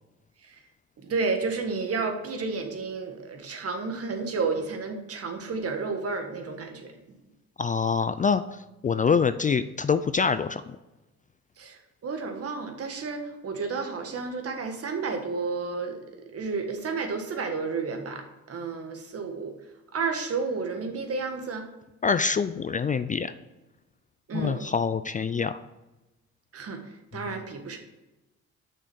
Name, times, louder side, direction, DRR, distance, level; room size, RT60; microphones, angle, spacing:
voice 1, 1.0-6.9 11.6-16.0 16.3-19.5 19.9-21.7 24.3-24.6 26.5-26.8 27.1-27.8, right 4 dB, 50° right, 5 dB, 1.6 m, -31 dB
voice 2, 7.6-10.8 22.0-23.3 24.3-25.6, left 5 dB, 25° left, 12 dB, 0.3 m, -25 dB
6.6 x 6.3 x 6.1 m, 1.0 s
cardioid pair, 90°, 30 cm